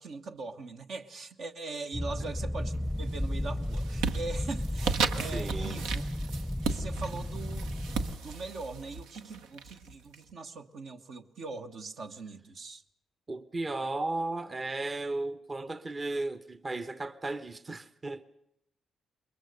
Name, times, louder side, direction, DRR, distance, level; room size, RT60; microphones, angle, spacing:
voice 1, 0.0-6.0 6.7-12.8, right 3 dB, 65° right, 1.2 m, -41 dB
sound 1, 1.9-8.2, left 1 dB, ahead, 0.7 m, -34 dB
sound 2, 2.7-3.2 3.5-10.2, right 5 dB, 85° right, 0.9 m, -35 dB
voice 2, 5.2-5.8 13.3-18.2, right 2 dB, 35° right, 1.0 m, -35 dB
22.0 x 21.0 x 6.6 m
hypercardioid pair, 45°, 0 cm